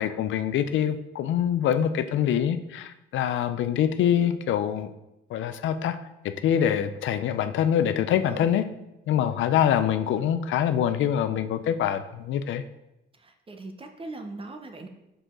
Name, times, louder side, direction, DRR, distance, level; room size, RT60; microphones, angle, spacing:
voice 1, 0.0-4.9 5.3-6.0 6.2-8.6 9.1-12.6, left 9 dB, 75° left, 11 dB, 0.5 m, -25 dB
voice 2, 8.3-8.6 13.1-14.9, right 2 dB, 25° right, 6 dB, 0.9 m, -40 dB
6.3 x 4.9 x 3.8 m, 0.91 s
cardioid pair, 90°, 20 cm